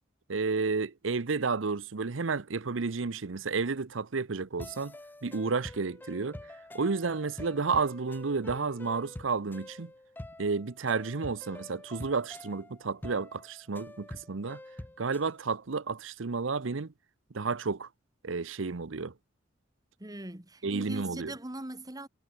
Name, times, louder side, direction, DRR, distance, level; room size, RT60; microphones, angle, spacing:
voice 1, 0.3-4.9 5.2-6.4 6.7-9.9 10.4-14.6 15.0-16.9 17.3-17.9 18.2-19.1 20.6-21.3, right 4 dB, 85° right, 0.8 m, -31 dB
sound 1, 4.6-15.3, left 1 dB, 10° left, 0.5 m, -46 dB
voice 2, 20.0-22.1, right 1 dB, 20° right, 1.9 m, -41 dB
head